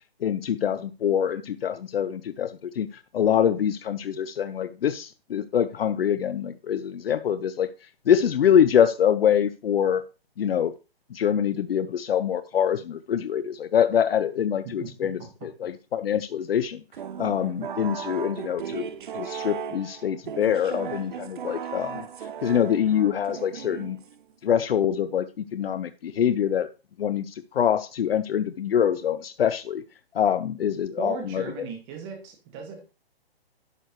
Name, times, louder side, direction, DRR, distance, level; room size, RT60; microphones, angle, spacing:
voice 1, 0.2-2.9 3.1-7.7 8.1-10.0 10.4-10.7 11.1-16.8 17.2-18.9 19.2-22.1 22.4-24.0 24.4-25.3 25.5-26.7 27.0-29.8 30.1-31.4, left 9 dB, 70° left, 0.6 m, -24 dB
sound 1, 16.9-24.3, right 8 dB, 50° right, 0.8 m, -36 dB
voice 2, 31.0-32.8, right 5 dB, 25° right, 2.0 m, -36 dB
11.0 x 6.6 x 3.1 m
hypercardioid pair, 155°, 31 cm